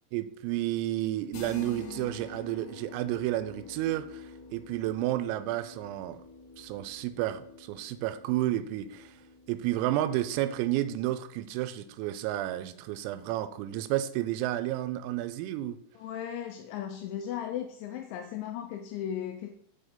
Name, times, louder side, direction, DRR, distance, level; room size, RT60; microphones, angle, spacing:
voice 1, 0.1-4.3 4.5-6.2 6.6-9.1 9.5-15.8, right 14 dB, 90° right, 13 dB, 3.3 m, -31 dB
sound 1, 1.3-11.0, left 4 dB, 65° left, 3.3 m, -48 dB
voice 2, 15.9-19.5, left 10 dB, 85° left, 5 dB, 2.7 m, -36 dB
8.6 x 4.6 x 5.1 m, 0.72 s
omnidirectional pair, 5.9 m